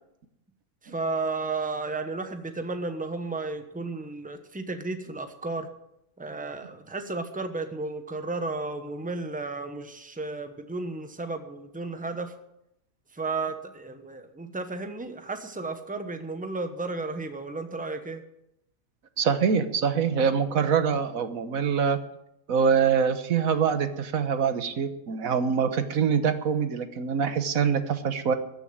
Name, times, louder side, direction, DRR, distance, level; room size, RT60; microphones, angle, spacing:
voice 1, 0.8-5.7 6.2-12.3 13.1-18.2, right 3 dB, 5° right, 8 dB, 1.0 m, -33 dB
voice 2, 19.2-22.0 22.5-28.3, right 6 dB, 80° right, 9 dB, 1.6 m, -24 dB
14.5 x 6.9 x 9.3 m, 0.83 s
omnidirectional pair, 1.4 m